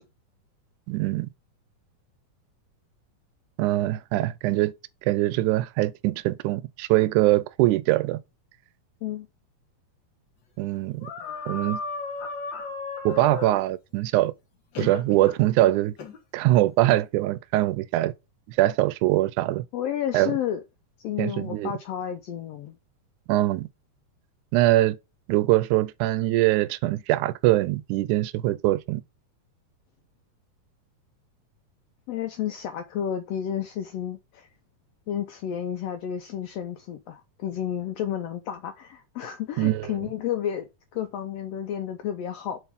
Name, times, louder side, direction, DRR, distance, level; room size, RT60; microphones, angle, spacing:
voice 1, 0.9-1.3 3.6-4.7 5.1-8.2 10.6-11.1 11.5-11.8 13.1-14.3 14.8-15.9 16.3-18.1 18.5-19.6 20.1-20.3 21.2-21.7 23.3-23.7 24.5-25.0 25.3-29.0 39.6-39.9, right 16 dB, 80° right, 1.9 m, -23 dB
sound 1, 11.0-13.6 14.7-15.4 16.0-16.2, left 4 dB, 55° left, 1.3 m, -34 dB
voice 2, 19.7-20.6 21.0-22.8 32.1-34.5 35.1-42.6, left 10 dB, 85° left, 1.4 m, -31 dB
8.1 x 4.2 x 3.5 m
omnidirectional pair, 3.8 m